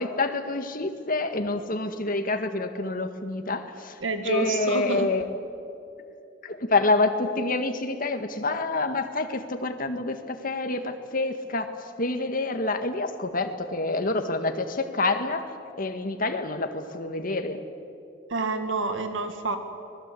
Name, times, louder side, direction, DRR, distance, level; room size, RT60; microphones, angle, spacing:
voice 1, 0.0-5.2 6.4-11.7 12.0-15.4 15.8-17.6, left 2 dB, 50° left, 7 dB, 1.8 m, -27 dB
voice 2, 4.0-5.1 18.3-19.6, right 2 dB, 85° right, 7 dB, 2.0 m, -28 dB
25.0 x 20.5 x 8.5 m, 2.5 s
head